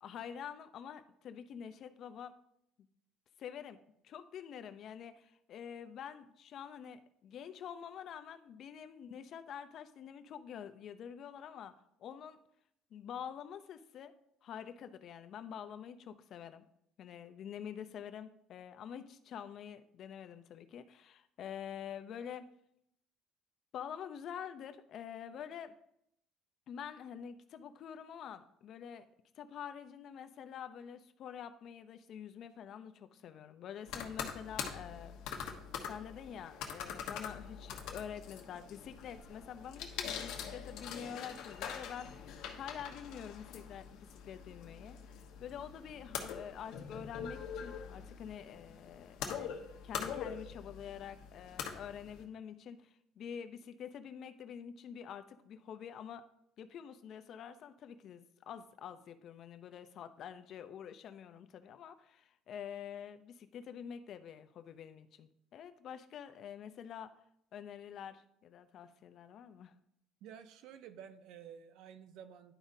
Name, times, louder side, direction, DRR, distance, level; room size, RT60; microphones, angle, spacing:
voice 1, 0.0-2.3 3.4-3.8 4.0-11.7 12.0-12.4 12.9-14.1 14.4-16.6 17.0-22.5 23.7-25.7 26.7-29.1 29.3-35.1 35.9-49.5 49.8-56.2 56.6-67.1 67.5-69.7, left 8 dB, 55° left, 10 dB, 0.6 m, -47 dB
sound 1, 33.9-52.2, left 7 dB, 75° left, 1.1 m, -44 dB
voice 2, 70.2-72.5, right 8 dB, 75° right, 11 dB, 0.6 m, -52 dB
11.0 x 5.0 x 2.7 m, 0.74 s
cardioid pair, 120°, 0 cm